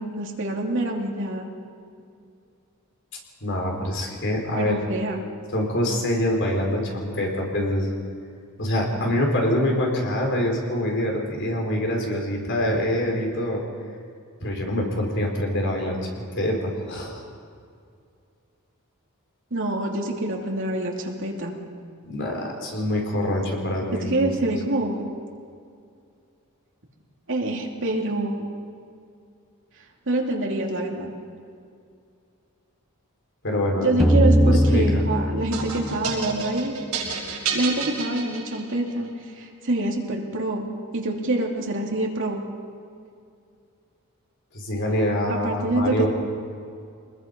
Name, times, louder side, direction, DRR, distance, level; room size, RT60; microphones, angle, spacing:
voice 1, 0.0-1.5 4.5-5.2 19.5-21.6 24.1-25.0 27.3-28.5 30.1-31.1 33.8-36.8 37.5-39.1 39.4-40.7 40.9-42.4 45.3-46.1, right 2 dB, 60° right, 0 dB, 2.8 m, -26 dB
voice 2, 3.4-4.7 5.5-7.9 8.6-13.6 14.4-17.2 22.1-24.3 33.4-34.0 34.5-34.8 44.5-46.1, left 1 dB, 55° left, 0 dB, 4.3 m, -25 dB
sound 1, 34.0-36.9, equal, ahead, 1.0 m, -20 dB
sound 2, 35.5-38.9, right 5 dB, 85° right, 5.7 m, -30 dB
25.0 x 21.0 x 5.4 m, 2.3 s
head